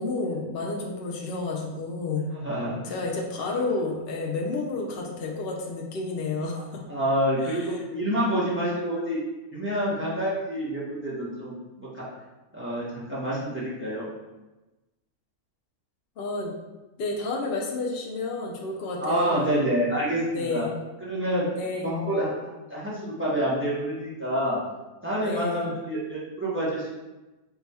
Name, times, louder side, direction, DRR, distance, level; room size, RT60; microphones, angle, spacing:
voice 1, 0.0-2.3 2.8-6.8 7.5-7.6 16.2-16.5 17.0-19.6 20.3-20.7 21.6-21.9 25.2-25.7, left 3 dB, 60° left, 0 dB, 0.6 m, -30 dB
voice 2, 2.4-3.0 3.5-3.6 6.5-6.6 6.9-9.2 9.5-11.5 11.8-12.1 12.5-14.1 19.0-20.7 21.0-22.3 22.7-24.6 25.0-26.9, equal, 10° right, -7 dB, 0.7 m, -27 dB
3.8 x 2.3 x 4.1 m, 1.1 s
omnidirectional pair, 1.5 m